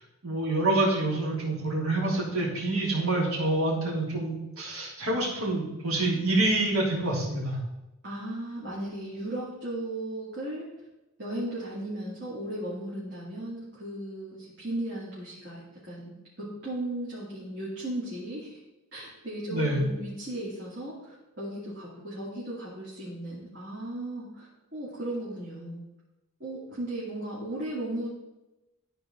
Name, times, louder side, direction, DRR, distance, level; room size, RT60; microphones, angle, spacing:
voice 1, 0.2-7.6 19.5-19.8, right 2 dB, 75° right, -5 dB, 3.3 m, -27 dB
voice 2, 8.0-10.7 11.2-18.6 18.9-24.5 24.7-25.8 26.4-28.1, right 1 dB, 55° right, -8 dB, 2.5 m, -36 dB
13.0 x 4.6 x 3.8 m, 0.98 s
head